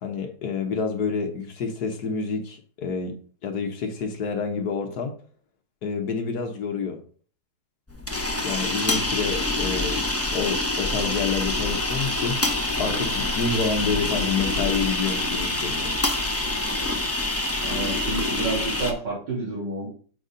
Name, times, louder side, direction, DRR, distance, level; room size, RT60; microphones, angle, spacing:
voice 1, 0.0-3.1 3.4-5.1 5.8-7.0 8.4-10.0 10.3-12.4 12.8-16.0, left 5 dB, 60° left, 1.4 m, -28 dB
sound 1, 7.9-18.9, left 2 dB, 15° left, 0.5 m, -26 dB
voice 2, 17.6-19.9, right 3 dB, 70° right, 3.2 m, -30 dB
7.1 x 4.1 x 5.0 m
omnidirectional pair, 2.0 m